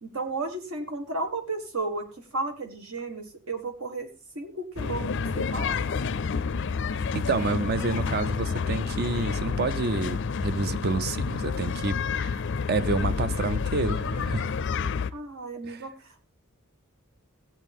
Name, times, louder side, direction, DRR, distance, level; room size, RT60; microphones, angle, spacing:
voice 1, 0.0-4.1 4.4-5.8 15.1-15.9, right 2 dB, 70° right, 1.7 m, -33 dB
sound 1, 4.8-15.1, left 5 dB, 55° left, 0.4 m, -29 dB
voice 2, 7.1-12.4 12.7-14.5 15.6-15.8, right 3 dB, 45° right, 0.5 m, -29 dB
15.5 x 8.2 x 3.5 m
head